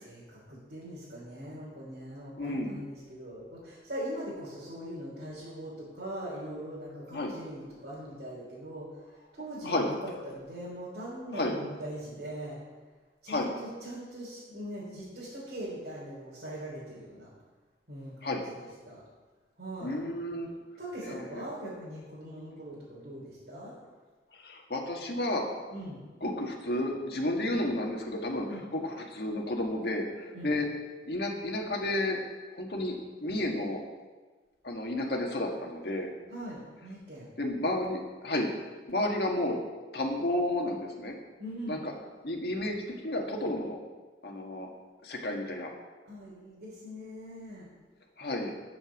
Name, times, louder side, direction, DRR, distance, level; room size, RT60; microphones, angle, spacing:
voice 1, 0.0-8.9 9.3-12.6 13.2-17.3 17.9-19.0 19.6-20.0 20.3-23.7 25.7-26.0 28.5-28.7 30.3-30.5 36.3-37.3 41.4-41.9 46.1-47.7, equal, 75° right, -9 dB, 3.7 m, -41 dB
voice 2, 2.4-2.8 7.1-7.3 9.6-9.9 11.3-11.6 13.3-13.5 18.2-18.4 19.8-20.5 21.0-21.5 24.4-25.5 26.2-28.5 28.7-30.7 31.1-32.2 32.6-33.8 34.6-36.1 37.4-38.5 38.9-39.6 39.9-41.2 41.7-41.8 42.2-43.8 44.2-44.7 45.0-45.7 48.2-48.5, left 1 dB, 65° left, 1 dB, 1.7 m, -31 dB
9.1 x 7.2 x 7.1 m, 1.3 s
head